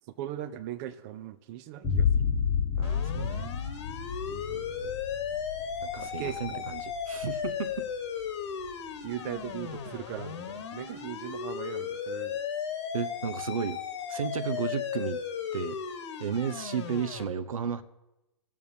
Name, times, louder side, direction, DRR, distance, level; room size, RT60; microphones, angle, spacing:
voice 1, 0.2-2.4 4.3-4.9 5.9-6.6 9.0-12.4, right 12 dB, 30° right, 10 dB, 0.5 m, -39 dB
sound 1, 1.8-9.2, left 7 dB, 15° left, 1.0 m, -31 dB
sound 2, 2.8-17.2, left 7 dB, 55° left, 1.2 m, -36 dB
voice 2, 2.8-3.5 5.8-7.9 12.9-13.8 14.1-15.2 15.5-15.8 16.2-17.8, right 7 dB, 75° right, 12 dB, 0.8 m, -33 dB
19.5 x 7.0 x 2.7 m, 0.98 s
hypercardioid pair, 135°, 18 cm